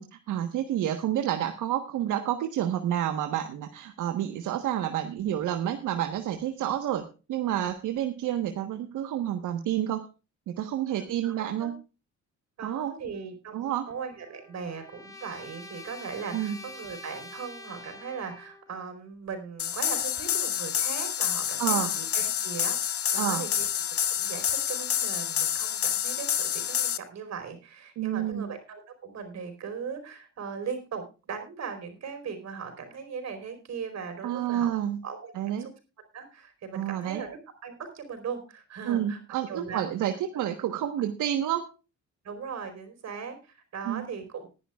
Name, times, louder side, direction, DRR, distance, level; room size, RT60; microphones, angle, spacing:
voice 1, 0.0-10.0 10.5-11.7 12.6-12.9 13.5-13.8 16.3-16.6 21.6-21.9 23.1-23.4 28.0-28.5 34.2-35.0 35.3-35.7 36.7-37.2 38.9-41.6 43.9-44.0, right 11 dB, 85° right, 6 dB, 1.3 m, -29 dB
voice 2, 10.9-11.7 12.6-23.7 24.1-34.7 35.0-35.7 36.1-39.2 39.5-40.0 42.2-44.5, right 6 dB, 60° right, 6 dB, 4.7 m, -39 dB
Trumpet, 13.9-18.7, left 2 dB, 10° left, 2.3 m, -46 dB
sound 1, 19.6-27.0, left 9 dB, 50° left, 0.9 m, -28 dB
20.5 x 11.0 x 2.4 m, 0.31 s
cardioid pair, 90°, 30 cm